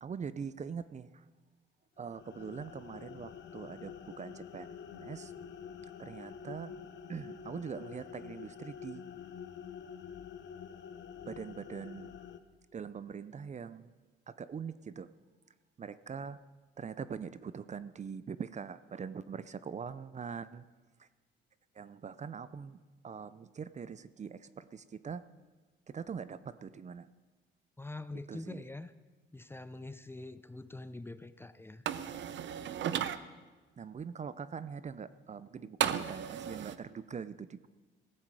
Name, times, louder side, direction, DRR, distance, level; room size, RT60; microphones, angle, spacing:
voice 1, 0.0-1.2 2.0-5.3 6.0-6.7 7.1-9.0 11.3-12.2 12.7-13.9 14.3-15.1 15.8-16.4 16.8-20.6 21.0-21.1 21.8-22.8 23.0-25.2 25.9-27.1 28.3-28.6 33.8-37.7, right 6 dB, 35° right, 15 dB, 0.6 m, -43 dB
sound 1, 2.0-12.4, left 7 dB, 65° left, 1.0 m, -47 dB
voice 2, 27.8-28.9 29.3-31.8, left 2 dB, 10° left, 13 dB, 0.6 m, -44 dB
sound 2, 31.9-33.2 35.8-36.8, right 9 dB, 65° right, 0.8 m, -34 dB
17.0 x 15.0 x 4.8 m, 1.3 s
cardioid pair, 90°, 20 cm